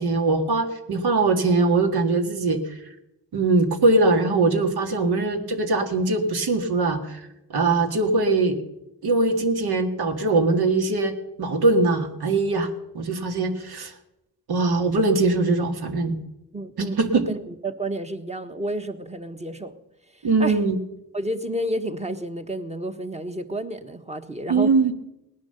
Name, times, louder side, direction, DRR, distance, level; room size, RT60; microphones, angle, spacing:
voice 1, 0.0-2.6 3.3-7.2 7.5-8.6 9.0-12.7 12.9-13.9 14.5-16.2 16.8-17.3 20.2-20.8 24.5-24.9, right 3 dB, 70° right, 5 dB, 1.9 m, -21 dB
voice 2, 16.5-19.7 20.1-20.6 21.1-24.7, right 1 dB, 15° right, 8 dB, 1.2 m, -31 dB
18.0 x 10.5 x 6.8 m, 0.91 s
cardioid pair, 85°, 40 cm